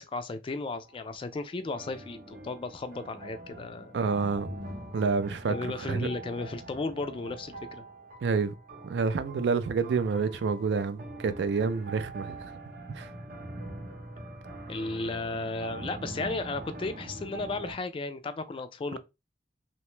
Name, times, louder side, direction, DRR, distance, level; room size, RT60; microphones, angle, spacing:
voice 1, 0.0-4.0 5.5-7.8 14.7-19.0, left 3 dB, 30° left, 0.3 m, -35 dB
sound 1, 0.6-1.1 1.8-17.7, right 2 dB, 55° right, 0.8 m, -43 dB
voice 2, 3.9-4.5 4.9-5.5 5.9-6.1 8.2-8.5 8.8-12.4 12.9-13.1, right 5 dB, 70° right, 0.4 m, -28 dB
2.8 x 2.2 x 3.0 m
head